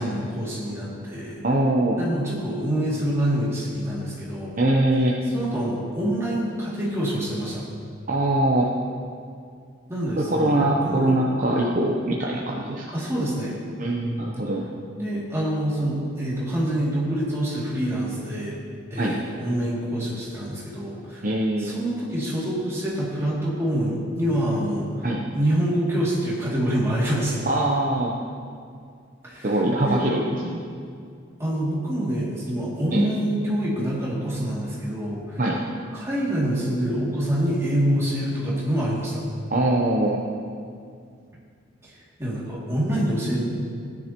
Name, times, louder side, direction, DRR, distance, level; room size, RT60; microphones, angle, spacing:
voice 1, 0.0-1.4 1.9-4.6 5.3-7.6 9.9-11.1 12.9-13.6 15.0-18.6 18.9-21.3 21.6-25.1 25.3-27.4 29.2-30.0 31.4-35.4 35.9-39.2 41.8-43.4, right 1 dB, 15° right, -7 dB, 2.5 m, -26 dB
voice 2, 1.4-2.0 4.6-5.2 8.1-8.7 10.2-12.8 13.8-14.6 19.0-19.2 21.2-21.7 25.0-25.2 27.5-28.1 29.4-30.6 32.9-33.1 35.4-35.6 39.5-40.2, right 1 dB, 40° right, -3 dB, 0.8 m, -22 dB
15.5 x 10.0 x 3.0 m, 2.2 s
head